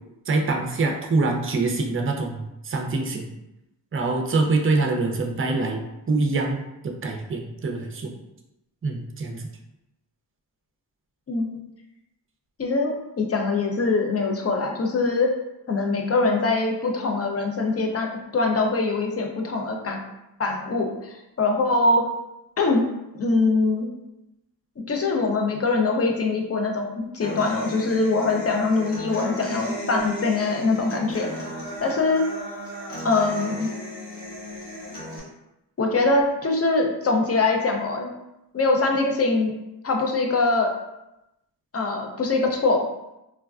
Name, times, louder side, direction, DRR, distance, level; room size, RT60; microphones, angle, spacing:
voice 1, 0.3-3.3 3.9-5.8 6.1-8.1 8.8-9.5, right 3 dB, 30° right, 2 dB, 0.5 m, -25 dB
voice 2, 12.6-15.3 15.7-20.0 20.4-22.1 22.6-22.8 23.1-23.9 24.8-31.3 31.8-32.2 33.0-33.7 35.8-38.1 38.5-39.5 39.8-40.7 41.7-42.8, left 3 dB, 35° left, 2 dB, 0.6 m, -23 dB
Human voice / Acoustic guitar, 27.2-35.2, equal, 60° left, 1.3 m, -35 dB
3.4 x 2.2 x 2.4 m, 0.91 s
cardioid pair, 60°, 44 cm